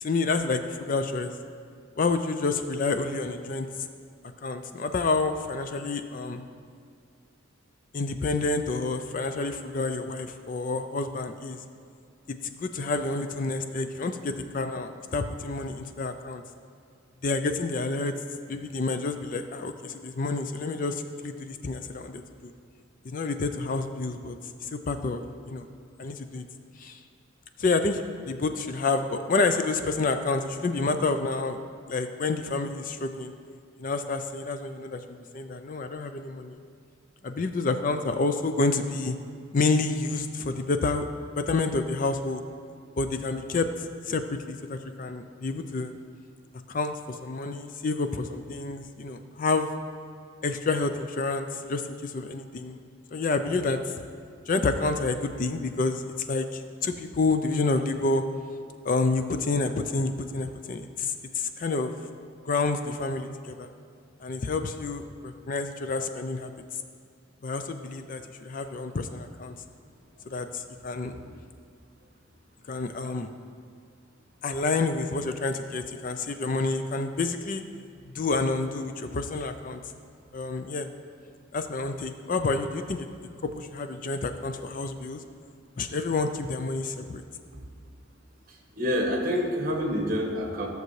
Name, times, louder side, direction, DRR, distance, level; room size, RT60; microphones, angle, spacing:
voice 1, 0.0-1.3 2.0-3.9 4.4-6.4 7.9-11.6 12.3-16.4 17.2-18.1 18.5-22.5 23.0-24.3 24.6-25.7 26.0-26.4 26.8-27.0 27.6-31.6 31.9-33.3 33.8-36.6 37.2-39.1 39.5-41.1 41.3-42.4 43.0-43.7 44.1-45.9 46.7-49.7 50.4-52.8 53.1-53.8 54.5-58.2 58.8-61.9 62.4-63.7 64.2-66.5 67.4-69.6 70.3-71.2 72.7-73.3 74.4-77.6 78.1-79.8 80.3-80.9 81.5-83.1 83.4-85.2 85.8-87.2, left 3 dB, 40° left, 8 dB, 0.4 m, -29 dB
voice 2, 88.8-90.7, equal, 45° right, 1 dB, 1.2 m, -27 dB
14.0 x 6.6 x 3.2 m, 2.3 s
head